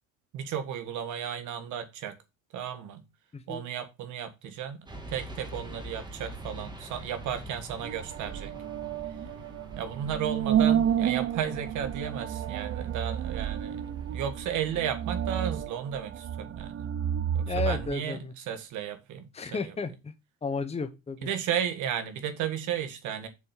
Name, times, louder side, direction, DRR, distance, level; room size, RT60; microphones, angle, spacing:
voice 1, 0.3-2.1 2.5-3.0 3.5-8.5 9.8-16.9 17.3-19.7 21.2-23.3, right 9 dB, 65° right, 1.7 m, -34 dB
voice 2, 3.3-3.6 17.5-18.3 19.3-20.1 20.4-21.3, left 4 dB, 20° left, 1.0 m, -33 dB
sound 1, 4.9-15.7, right 1 dB, 15° right, 1.8 m, -45 dB
sound 2, 7.8-17.9, right 10 dB, 45° right, 0.6 m, -31 dB
7.0 x 4.5 x 5.7 m
cardioid pair, 100°, 32 cm